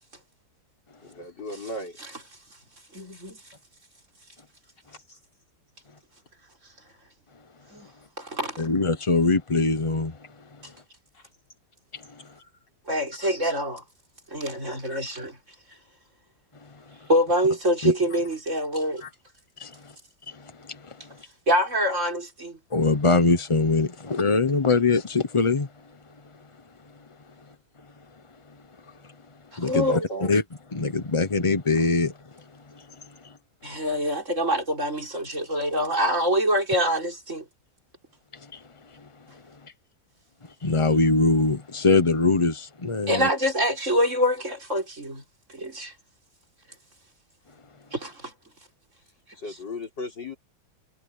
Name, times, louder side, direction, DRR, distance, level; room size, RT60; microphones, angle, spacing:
voice 1, 1.0-2.0 4.9-5.2 11.1-11.3 12.4-12.5 13.2-13.5 14.9-15.0 29.7-30.3 49.4-50.4, equal, 85° left, 5.8 m, -36 dB
voice 2, 2.9-3.4 7.7-7.9 8.2-8.6 12.9-13.8 14.3-15.3 17.1-19.0 21.5-22.6 29.6-30.0 33.6-37.4 43.1-45.2 45.5-45.9 47.9-48.3, equal, 45° right, 5.9 m, -25 dB
voice 3, 8.6-10.2 11.9-12.0 17.8-17.9 19.0-19.1 19.6-19.9 20.3-21.2 22.7-25.7 29.6-29.9 30.3-30.4 30.7-32.4 32.7-32.9 33.2-33.3 38.3-38.6 38.9-39.0 39.6-39.7 40.6-43.3, left 3 dB, 25° left, 0.7 m, -23 dB
omnidirectional pair, 1.8 m